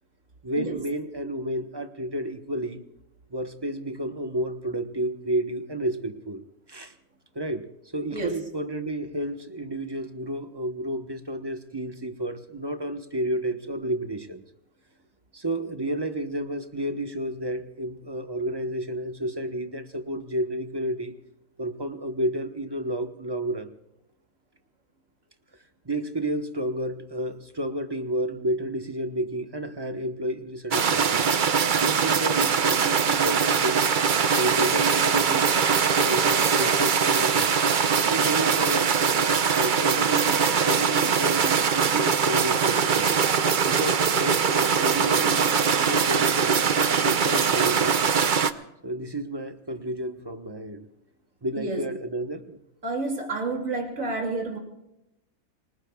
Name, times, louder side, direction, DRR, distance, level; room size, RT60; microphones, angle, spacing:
voice 1, 0.4-2.8 3.3-6.4 6.7-6.9 7.3-7.7 7.9-14.4 15.3-21.1 21.6-23.7 25.8-31.3 31.8-37.5 38.1-43.2 43.7-46.6 47.0-48.1 48.8-50.9 51.4-52.6, right 1 dB, 20° right, 7 dB, 1.1 m, -31 dB
sound 1, 30.7-48.5, right 6 dB, 45° right, 0.7 m, -22 dB
voice 2, 51.5-51.9 52.8-54.6, right 3 dB, 65° right, 1 dB, 3.2 m, -29 dB
28.0 x 20.0 x 2.4 m, 0.89 s
omnidirectional pair, 1.5 m